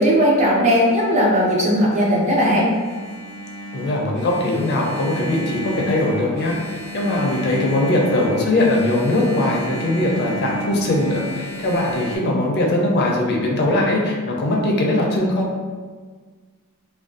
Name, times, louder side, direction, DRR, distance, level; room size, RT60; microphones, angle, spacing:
voice 1, 0.0-2.7, equal, 30° right, -4 dB, 0.5 m, -17 dB
Engine, 0.8-12.2, equal, 65° right, 1.3 m, -32 dB
voice 2, 3.7-6.6 6.9-15.5, left 1 dB, 45° left, -1 dB, 0.4 m, -20 dB
2.4 x 2.2 x 2.4 m, 1.5 s
head